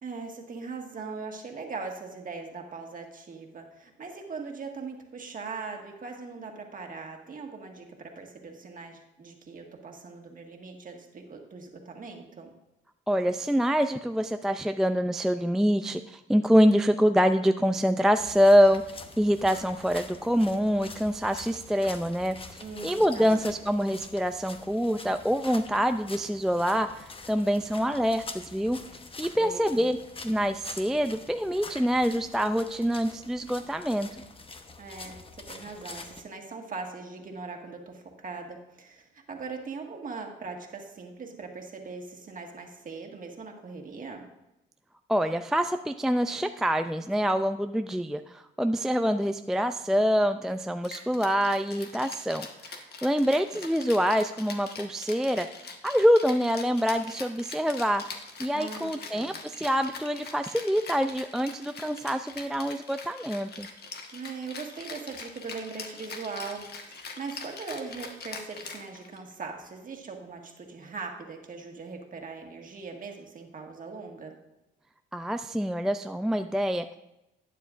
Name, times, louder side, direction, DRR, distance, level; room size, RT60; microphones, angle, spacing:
voice 1, 0.0-12.5 22.6-23.5 29.3-29.8 34.8-44.3 58.5-59.3 64.1-74.3, right 4 dB, 45° right, 2 dB, 1.7 m, -40 dB
voice 2, 13.1-28.8 29.2-30.0 30.2-34.2 45.1-55.5 55.8-58.0 58.4-63.7 75.1-76.9, equal, ahead, 8 dB, 0.3 m, -25 dB
sound 1, 18.2-36.2, left 3 dB, 25° left, 0.9 m, -45 dB
Rattle (instrument), 50.8-69.3, left 4 dB, 55° left, 1.4 m, -43 dB
12.0 x 9.3 x 2.5 m, 0.91 s
cardioid pair, 90°, 20 cm